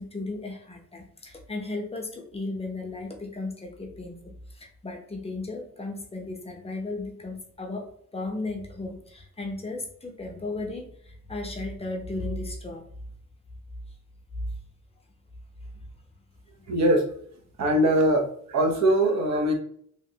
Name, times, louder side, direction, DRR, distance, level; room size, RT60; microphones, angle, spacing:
voice 1, 0.0-7.9 8.1-12.8, left 2 dB, 20° left, 1 dB, 0.6 m, -35 dB
voice 2, 16.7-17.1 17.6-19.5, right 1 dB, 60° right, 3 dB, 0.7 m, -22 dB
2.9 x 2.8 x 2.7 m, 0.64 s
cardioid pair, 125°, 30 cm